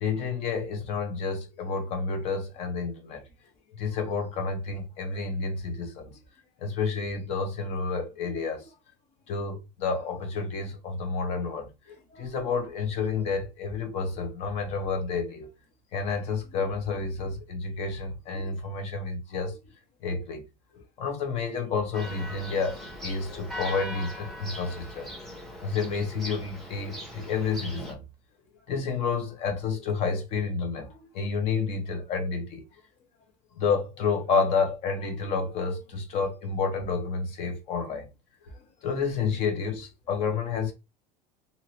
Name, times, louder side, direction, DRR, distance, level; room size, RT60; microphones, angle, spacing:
voice 1, 0.0-3.2 3.8-6.2 6.6-8.7 9.3-15.5 15.9-19.6 20.0-20.4 20.7-25.1 25.6-28.0 28.7-32.6 33.6-38.1 38.8-40.7, left 5 dB, 40° left, 1.0 m, -30 dB
Church bell, 21.9-27.9, equal, ahead, 0.9 m, -40 dB
2.8 x 2.7 x 2.9 m
cardioid pair, 175°, 17 cm